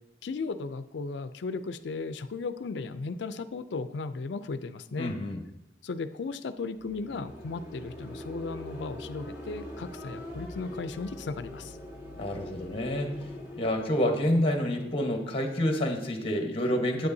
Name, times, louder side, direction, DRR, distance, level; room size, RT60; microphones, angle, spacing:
voice 1, 0.2-5.2 5.8-11.8, left 4 dB, 85° left, 11 dB, 0.4 m, -36 dB
voice 2, 5.0-5.4 12.2-13.1 13.6-17.1, left 1 dB, 35° left, 3 dB, 1.2 m, -28 dB
sound 1, 6.7-15.7, left 1 dB, 20° right, 2.6 m, -43 dB
9.6 x 8.9 x 2.7 m, 0.88 s
head